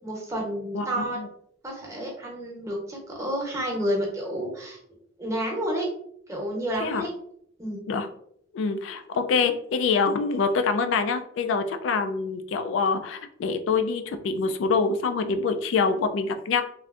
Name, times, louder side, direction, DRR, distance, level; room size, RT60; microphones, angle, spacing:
voice 1, 0.0-1.2 1.6-4.8 5.2-5.9 6.3-7.1 7.6-7.8, equal, 15° right, -2 dB, 0.8 m, -30 dB
voice 2, 0.7-1.3 6.8-7.0 7.9-8.1 8.5-16.6, left 4 dB, 75° left, 8 dB, 0.3 m, -25 dB
3.2 x 2.5 x 2.4 m, 0.69 s
head